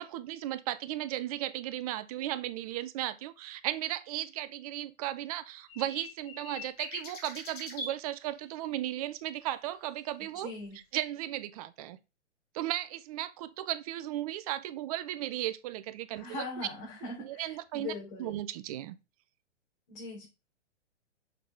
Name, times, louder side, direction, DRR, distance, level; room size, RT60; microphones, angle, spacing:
voice 1, 0.0-10.5 10.9-12.0 12.5-16.4 17.2-17.9 18.2-19.0, right 14 dB, 30° right, 0.5 m, -35 dB
sound 1, 5.7-7.9 10.7-10.8, left 2 dB, 25° left, 2.7 m, -42 dB
voice 2, 10.4-10.8 16.1-18.3 19.9-20.3, left 3 dB, 45° left, 3.2 m, -41 dB
6.7 x 5.3 x 3.4 m
figure-of-eight pair, 115°, 36 cm